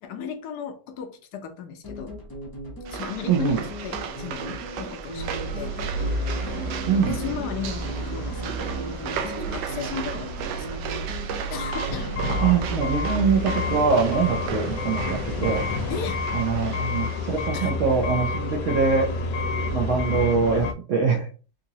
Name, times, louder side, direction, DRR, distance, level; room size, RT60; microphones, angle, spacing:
voice 1, 0.0-2.1 2.9-5.8 6.7-10.8 11.5-12.1 15.9-16.3 16.6-16.9 17.5-17.7, left 7 dB, 70° left, 1.1 m, -36 dB
sound 1, 1.8-14.8, equal, 25° left, 0.5 m, -38 dB
sound 2, 2.8-17.5, right 8 dB, 80° right, 1.2 m, -36 dB
voice 2, 3.3-3.6 6.9-7.1 12.4-15.6 16.3-19.1 19.7-21.3, right 5 dB, 65° right, 0.8 m, -23 dB
sound 3, 5.2-20.7, left 2 dB, 90° left, 1.3 m, -30 dB
3.8 x 2.8 x 2.7 m
omnidirectional pair, 1.8 m